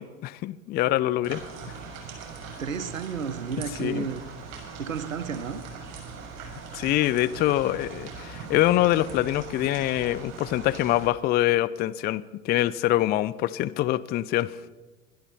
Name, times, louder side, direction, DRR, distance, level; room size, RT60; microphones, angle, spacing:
voice 1, 0.0-1.4 3.8-4.1 6.7-14.6, left 14 dB, 25° left, 18 dB, 0.4 m, -25 dB
sound 1, 1.2-11.1, right 5 dB, 40° right, 6.0 m, -41 dB
voice 2, 2.6-4.2 4.8-5.6, right 6 dB, 85° right, 13 dB, 1.0 m, -32 dB
21.0 x 12.5 x 4.2 m, 1.3 s
figure-of-eight pair, 80°, 39 cm